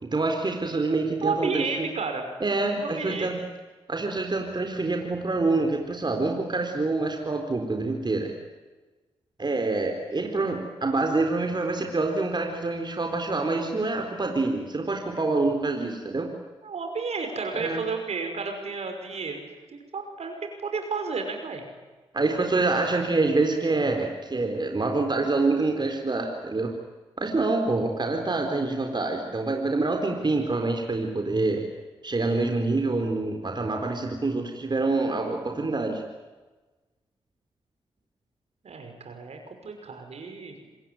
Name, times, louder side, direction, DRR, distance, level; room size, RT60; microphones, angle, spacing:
voice 1, 0.0-1.9 2.4-3.4 3.9-8.3 9.4-16.3 17.5-17.8 22.1-26.7 27.2-31.6 32.0-36.0, right 3 dB, 40° right, 3 dB, 4.2 m, -26 dB
voice 2, 1.2-2.3 2.7-3.3 16.6-19.5 19.7-20.3 20.6-21.6 38.6-40.5, right 4 dB, 65° right, 5 dB, 5.7 m, -32 dB
26.5 x 21.0 x 9.3 m, 1.3 s
supercardioid pair, 40°, 12 cm